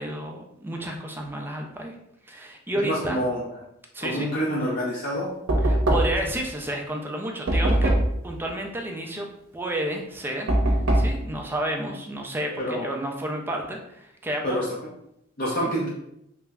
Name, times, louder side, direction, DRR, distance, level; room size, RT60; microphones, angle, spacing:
voice 1, 0.0-2.0 2.2-3.2 3.9-4.3 5.6-7.9 8.2-9.3 9.5-14.6 15.6-15.7, right 1 dB, 10° right, 1 dB, 0.3 m, -31 dB
voice 2, 2.8-3.4 4.0-5.3 12.6-12.9 14.4-14.6 15.4-15.9, equal, 45° left, -5 dB, 0.6 m, -27 dB
Knock, 5.5-6.3 7.5-8.2 10.5-11.2, right 1 dB, 75° right, 0.6 m, -21 dB
3.2 x 2.0 x 3.5 m, 0.78 s
head